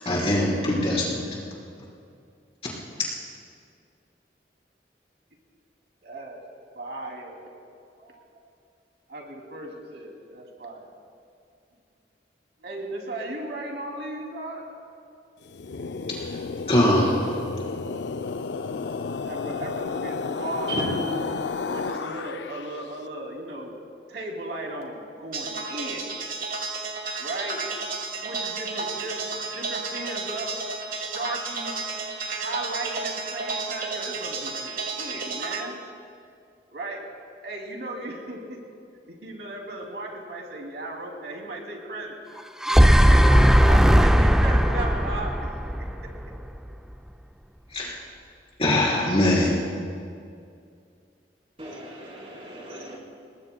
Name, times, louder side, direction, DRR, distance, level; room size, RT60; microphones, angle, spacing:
voice 1, 0.0-1.3 16.1-16.2 16.7-17.2 47.7-48.0 48.6-49.6, left 1 dB, 35° left, -5 dB, 4.0 m, -22 dB
voice 2, 6.0-6.4 6.7-7.4 8.0-8.4 9.1-10.9 12.6-14.6 18.1-18.2 19.2-21.3 21.7-23.7 24.1-26.1 27.2-27.6 28.1-29.2 29.5-30.5 31.0-31.7 32.3-35.8 36.7-37.0 37.4-38.6 39.2-42.2 42.6-45.3, right 2 dB, 75° right, 0 dB, 2.7 m, -36 dB
sound 1, 15.4-22.8, left 4 dB, 80° left, 0.5 m, -32 dB
sound 2, 25.3-35.6, right 4 dB, 55° right, 1.5 m, -32 dB
sound 3, 42.4-46.6, equal, 5° right, 0.4 m, -17 dB
voice 3, 51.6-53.0, right 1 dB, 35° right, -3 dB, 3.9 m, -35 dB
28.0 x 20.0 x 2.2 m, 2.3 s
head